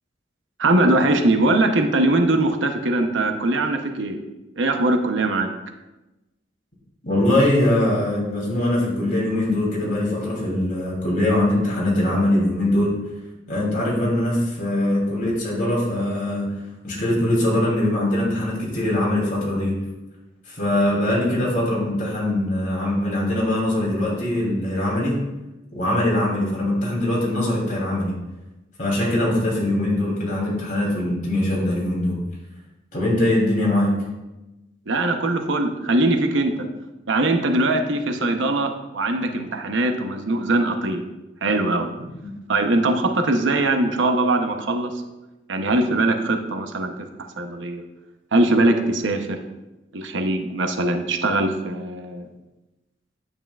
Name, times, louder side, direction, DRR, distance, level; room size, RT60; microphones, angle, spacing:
voice 1, 0.6-4.2 4.6-5.5 34.9-36.7 37.1-41.0 41.4-41.9 42.5-44.9 45.5-47.1 47.4-47.8 48.3-49.4 49.9-52.3, right 2 dB, 80° right, 5 dB, 0.8 m, -21 dB
voice 2, 7.0-13.0 13.5-16.5 16.8-19.8 20.5-25.2 25.7-28.1 28.8-32.2 32.9-33.9 42.2-42.3, left 1 dB, 45° left, -4 dB, 3.0 m, -22 dB
9.5 x 8.2 x 2.4 m, 1.0 s
head